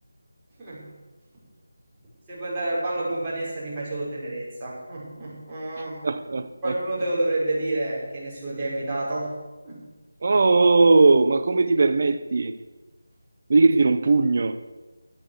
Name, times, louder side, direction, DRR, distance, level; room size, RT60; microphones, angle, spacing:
voice 1, 2.3-6.0 6.6-9.3 9.6-9.8, right 1 dB, 10° right, -10 dB, 5.3 m, -29 dB
voice 2, 6.0-6.8 10.2-12.5 13.5-14.7, right 3 dB, 45° right, 10 dB, 1.0 m, -19 dB
12.0 x 11.0 x 6.6 m, 1.2 s
figure-of-eight pair, 170°, 0 cm